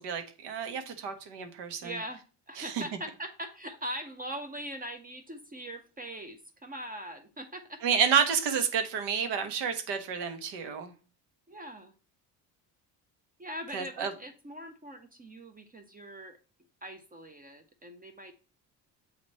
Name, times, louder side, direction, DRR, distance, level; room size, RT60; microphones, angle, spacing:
voice 1, 0.0-1.9 2.6-2.8 7.8-10.9 13.7-14.1, right 7 dB, 75° right, 8 dB, 1.3 m, -30 dB
voice 2, 1.8-7.8 11.5-11.9 13.4-16.4 16.8-18.3, right 1 dB, 20° right, 7 dB, 0.7 m, -41 dB
7.8 x 3.0 x 4.2 m, 0.35 s
supercardioid pair, 90°, 42 cm